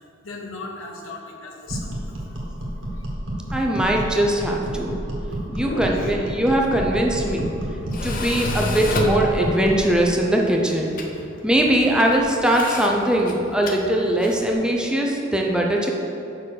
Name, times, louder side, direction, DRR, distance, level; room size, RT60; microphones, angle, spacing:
voice 1, 0.2-2.4 2.9-3.0 5.4-6.1, left 1 dB, 85° left, 1 dB, 0.9 m, -35 dB
sound 1, 1.7-9.9, right 1 dB, 70° right, 1.5 m, -30 dB
voice 2, 3.5-5.0 5.5-7.5 8.0-10.9 11.4-15.9, right 1 dB, 5° right, -1 dB, 0.5 m, -21 dB
Tools, 6.6-14.5, left 2 dB, 45° left, 0.6 m, -32 dB
5.6 x 4.5 x 6.3 m, 3.0 s
head